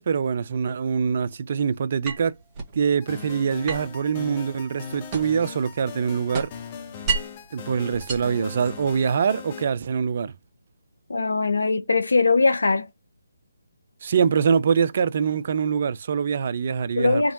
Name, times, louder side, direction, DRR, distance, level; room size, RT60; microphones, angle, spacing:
voice 1, 0.0-2.3 2.7-6.5 7.5-10.3 14.0-17.2, right 6 dB, 45° right, 0.5 m, -24 dB
sound 1, 2.0-2.8 3.7-5.5 5.8-7.5 7.9-9.0, right 4 dB, 20° right, 1.7 m, -32 dB
sound 2, 3.0-9.7, left 7 dB, 25° left, 0.8 m, -40 dB
voice 2, 11.1-12.9 17.0-17.3, left 3 dB, 75° left, 0.9 m, -21 dB
3.7 x 3.5 x 2.9 m
figure-of-eight pair, 155°, 0 cm